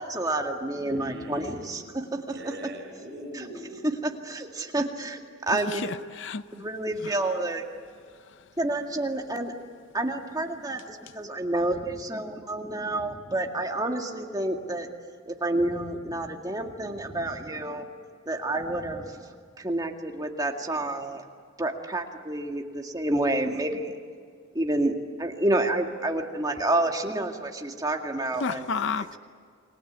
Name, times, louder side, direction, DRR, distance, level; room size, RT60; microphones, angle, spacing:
voice 1, 0.0-2.2 4.0-5.2 5.5-5.9 6.6-7.6 8.6-9.5 9.9-14.9 15.3-17.9 18.3-21.2 21.6-23.9 24.5-28.7, right 2 dB, 20° right, 3 dB, 2.1 m, -29 dB
voice 2, 0.8-3.9, equal, 55° right, 2 dB, 6.9 m, -42 dB
voice 3, 5.7-6.6 7.0-7.1 28.4-29.2, left 5 dB, 60° left, 13 dB, 0.6 m, -31 dB
29.5 x 21.5 x 8.2 m, 2.1 s
head